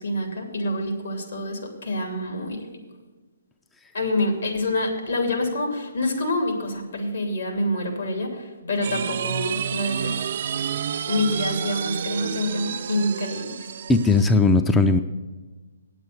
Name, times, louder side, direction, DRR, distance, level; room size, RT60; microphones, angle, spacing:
voice 1, 0.0-2.6 3.9-10.2 11.1-13.6, left 1 dB, 75° left, 2 dB, 2.9 m, -26 dB
sound 1, 8.8-14.3, right 8 dB, 50° right, 0.4 m, -30 dB
voice 2, 13.9-15.0, left 3 dB, 10° left, 8 dB, 0.4 m, -18 dB
8.8 x 8.1 x 8.1 m, 1.3 s
hypercardioid pair, 145°, 0 cm